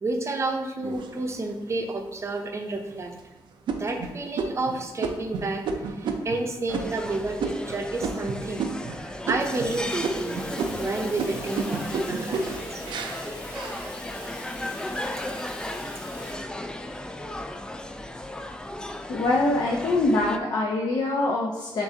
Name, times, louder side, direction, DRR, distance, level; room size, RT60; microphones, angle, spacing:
voice 1, 0.0-3.1 3.7-8.7 9.0-10.4 10.8-12.8, right 2 dB, 35° right, 4 dB, 0.6 m, -30 dB
sound 1, 0.8-1.7 2.3-2.4 2.9-3.2 3.7-9.0 9.2-9.7 10.0-14.3 14.8-15.4, right 4 dB, 80° right, 0.5 m, -32 dB
sound 2, 6.7-20.4, left 1 dB, 10° left, 0.3 m, -35 dB
Fire, 9.4-16.3, left 2 dB, 80° left, 1.4 m, -44 dB
voice 2, 19.1-21.8, left 2 dB, 60° left, -2 dB, 0.7 m, -24 dB
6.7 x 2.6 x 2.7 m, 1.1 s
cardioid pair, 85°, 8 cm